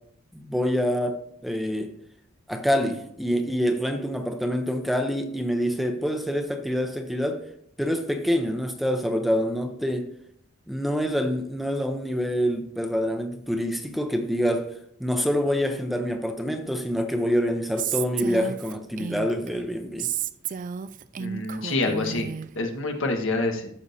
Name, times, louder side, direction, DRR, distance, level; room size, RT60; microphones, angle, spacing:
voice 1, 0.3-1.9 2.5-7.4 7.8-10.1 10.7-14.7 15.0-20.1, equal, ahead, 0.7 m, -26 dB
Female speech woman speaking, 17.8-19.5 20.0-22.5, right 8 dB, 40° right, 0.3 m, -32 dB
voice 2, 21.2-23.7, left 2 dB, 80° left, 1.5 m, -27 dB
13.5 x 6.6 x 2.7 m
head